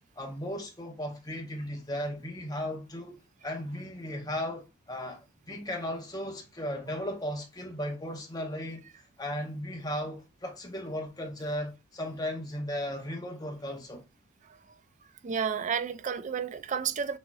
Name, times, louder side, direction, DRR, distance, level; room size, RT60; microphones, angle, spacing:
voice 1, 0.2-8.9 9.2-14.0, equal, 20° left, 1.0 m, -36 dB
voice 2, 15.2-17.2, right 7 dB, 40° right, 0.4 m, -31 dB
6.2 x 3.0 x 2.3 m
head